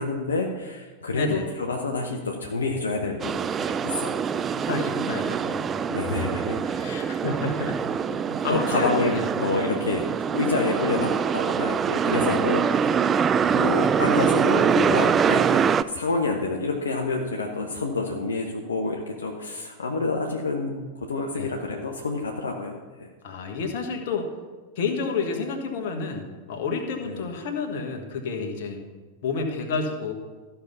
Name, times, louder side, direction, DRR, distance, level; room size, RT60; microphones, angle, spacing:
voice 1, 0.0-4.5 5.9-7.0 8.5-10.0 10.3-12.9 13.5-23.1 27.0-27.2, left 3 dB, 70° left, 1 dB, 0.9 m, -28 dB
voice 2, 1.1-1.5 4.5-9.2 12.1-12.4 21.4-21.5 23.2-24.3 24.7-28.8 29.2-30.1, left 4 dB, 50° left, 4 dB, 1.5 m, -30 dB
sound 1, 3.2-15.8, right 7 dB, 25° right, 0.3 m, -24 dB
13.5 x 5.7 x 5.5 m, 1.3 s
figure-of-eight pair, 90°, 0 cm